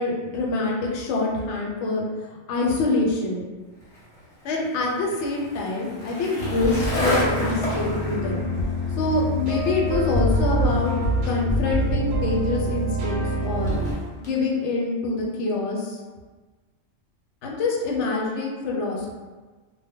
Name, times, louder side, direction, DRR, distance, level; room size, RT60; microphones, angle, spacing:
voice 1, 0.0-2.1 2.5-3.4 4.4-8.4 9.0-10.9 11.2-13.8 14.2-16.0 17.4-19.1, left 3 dB, 75° left, -2 dB, 0.9 m, -25 dB
Skateboard, 3.8-14.3, left 1 dB, 35° left, 0.7 m, -33 dB
sound 1, 6.4-13.9, equal, 65° right, 0.8 m, -25 dB
2.1 x 2.0 x 3.4 m, 1.3 s
omnidirectional pair, 1.2 m